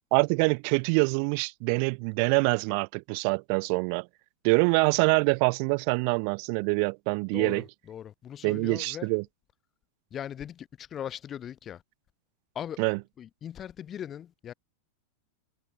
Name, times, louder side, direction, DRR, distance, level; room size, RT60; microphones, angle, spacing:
voice 1, 0.1-4.1 4.4-7.6 8.4-9.2 12.8-13.0, right 40 dB or more, 45° right, 2.7 m, -25 dB
voice 2, 7.3-9.1 10.1-11.8 12.5-12.8 13.2-14.5, left 9 dB, 25° left, 6.3 m, -39 dB
figure-of-eight pair, 90°, 0 cm